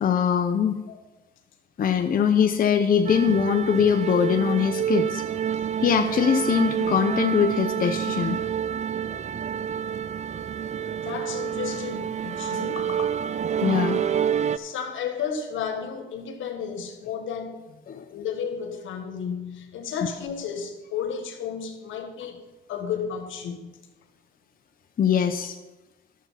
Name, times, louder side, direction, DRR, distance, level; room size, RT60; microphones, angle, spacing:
voice 1, 0.0-0.8 1.8-5.2 5.8-8.4 13.6-14.0 17.9-18.1 25.0-25.6, left 7 dB, 45° left, 0.8 m, -22 dB
sound 1, 3.1-14.6, right 8 dB, 35° right, 0.4 m, -28 dB
voice 2, 11.0-13.1 14.5-17.6 18.1-22.4 22.7-23.8, left 7 dB, 80° left, 1.6 m, -33 dB
12.0 x 7.2 x 5.7 m
cardioid pair, 90°, 20 cm